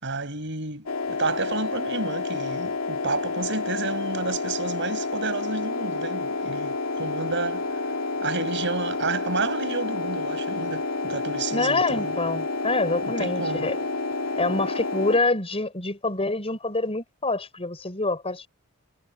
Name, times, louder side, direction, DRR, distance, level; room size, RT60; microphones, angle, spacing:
voice 1, 0.0-7.6 8.2-12.2 13.2-13.6, right 3 dB, 55° right, 5.4 m, -31 dB
sound 1, 0.9-15.2, left 3 dB, 90° left, 2.2 m, -29 dB
voice 2, 11.5-13.8 14.4-18.5, left 2 dB, 25° left, 5.4 m, -26 dB
head